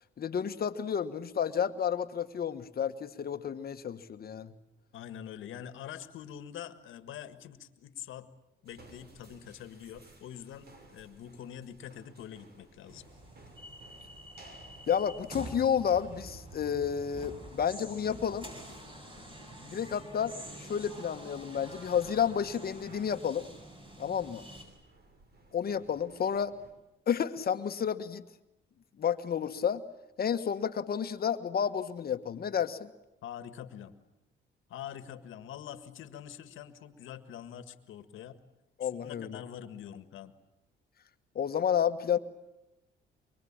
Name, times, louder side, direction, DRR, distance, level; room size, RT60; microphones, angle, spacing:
voice 1, 0.2-4.5 14.9-18.5 19.6-23.5 24.0-24.4 25.5-26.5 27.1-28.2 29.0-29.8 30.2-32.9 38.8-39.4 41.3-42.2, left 8 dB, 50° left, 10 dB, 1.5 m, -31 dB
voice 2, 4.9-8.3 8.6-13.0 33.2-33.9 34.7-38.4 38.8-40.3, left 10 dB, 80° left, 11 dB, 1.8 m, -45 dB
sound 1, 8.7-26.7, right 2 dB, 55° right, 6.5 m, -59 dB
sound 2, 12.9-24.7, right 1 dB, 25° right, 7.5 m, -47 dB
24.0 x 24.0 x 8.9 m, 0.92 s
cardioid pair, 90°, 20 cm